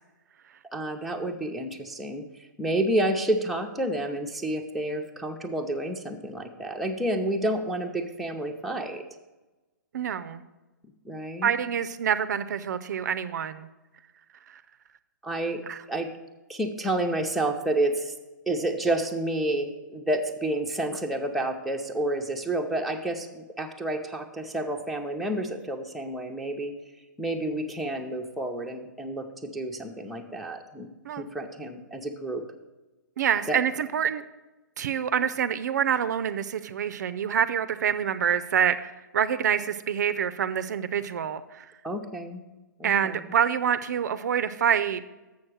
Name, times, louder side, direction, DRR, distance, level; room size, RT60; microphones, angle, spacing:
voice 1, 0.7-2.2 2.6-9.0 11.0-11.5 15.2-15.6 15.9-16.1 16.5-18.1 18.5-26.7 27.2-30.9 31.2-32.4 33.5-33.6 41.8-42.4 42.8-43.1, right 1 dB, ahead, 0 dB, 0.7 m, -29 dB
voice 2, 9.9-10.4 11.4-13.7 15.7-15.8 31.0-31.2 33.2-34.2 34.8-41.6 42.8-45.0, right 8 dB, 60° right, 12 dB, 0.5 m, -26 dB
7.0 x 6.4 x 6.2 m, 1.1 s
hypercardioid pair, 130°, 11 cm